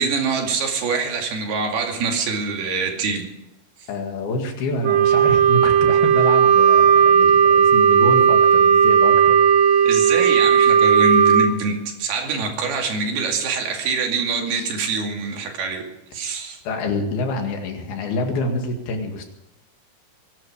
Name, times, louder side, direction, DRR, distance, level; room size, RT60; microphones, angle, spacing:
voice 1, 0.0-3.3 9.8-15.8 16.1-16.6, right 4 dB, 90° right, 2 dB, 4.4 m, -24 dB
voice 2, 3.9-9.4 14.5-14.7 16.7-19.3, left 2 dB, 80° left, 3 dB, 4.0 m, -27 dB
Wind instrument woodwind instrument, 4.8-11.5, right 7 dB, 70° right, 2.7 m, -15 dB
22.0 x 11.5 x 5.0 m, 0.95 s
omnidirectional pair, 4.4 m